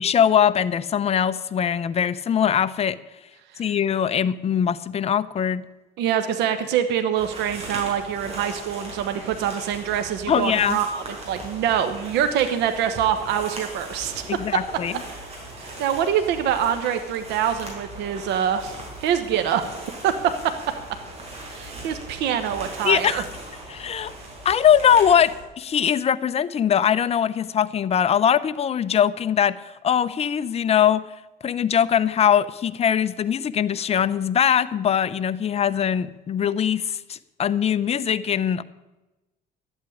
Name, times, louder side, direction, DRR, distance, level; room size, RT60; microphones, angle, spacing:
voice 1, 0.0-3.0 3.6-5.6 10.3-10.8 14.3-14.9 22.8-23.2 23.7-24.1 24.4-31.0 31.4-38.6, left 8 dB, 40° left, 13 dB, 0.7 m, -21 dB
voice 2, 6.0-14.1 15.6-19.8 20.0-20.5 21.5-23.2, right 9 dB, 85° right, 8 dB, 1.1 m, -25 dB
sound 1, 7.1-25.4, right 2 dB, 40° right, 5.6 m, -39 dB
11.5 x 8.2 x 9.9 m, 1.0 s
cardioid pair, 110°, 17 cm